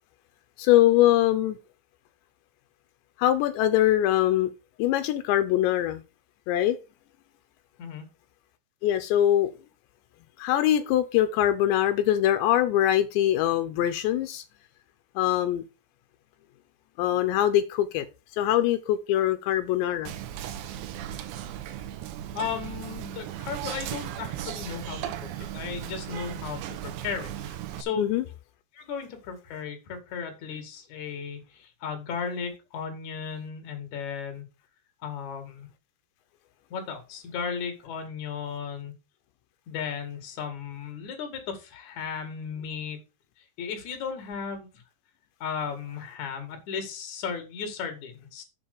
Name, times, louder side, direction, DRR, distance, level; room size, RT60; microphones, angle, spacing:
voice 1, 0.6-1.6 3.2-4.5 4.8-6.0 6.5-6.8 8.8-9.5 10.4-14.4 15.2-15.6 17.0-18.1 18.3-20.1 28.0-28.2, left 12 dB, 85° left, 3.1 m, -23 dB
Whispering, 20.1-27.8, right 11 dB, 85° right, 3.1 m, -36 dB
voice 2, 22.3-25.0 25.5-27.3 27.8-28.0 28.7-34.4 35.0-35.7 36.7-38.9 39.7-43.0 43.6-44.7 45.4-48.4, left 6 dB, 50° left, 3.1 m, -35 dB
7.8 x 5.5 x 6.7 m
omnidirectional pair, 5.0 m